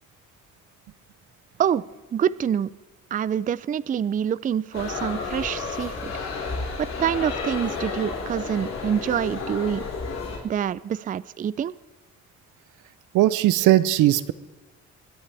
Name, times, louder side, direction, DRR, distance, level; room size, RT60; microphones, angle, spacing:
voice 1, 2.1-2.7 3.1-6.1 6.8-9.8 10.4-11.8, right 9 dB, 30° right, 19 dB, 0.4 m, -26 dB
sound 1, 4.7-10.4, left 4 dB, 60° left, 4.8 m, -31 dB
voice 2, 13.1-14.3, right 14 dB, 80° right, 17 dB, 0.6 m, -18 dB
22.5 x 10.0 x 3.4 m, 1.2 s
cardioid pair, 90°, 30 cm